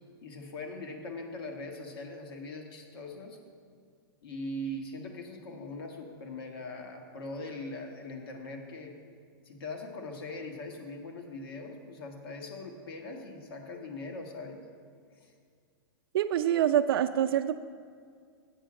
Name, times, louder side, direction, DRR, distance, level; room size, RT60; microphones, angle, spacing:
voice 1, 0.2-3.4 4.2-8.9 9.4-14.6 15.2-15.3, left 2 dB, 75° left, 2 dB, 1.5 m, -41 dB
voice 2, 16.1-17.5, right 10 dB, 75° right, 7 dB, 0.4 m, -25 dB
7.8 x 5.1 x 7.4 m, 2.2 s
hypercardioid pair, 125°, 12 cm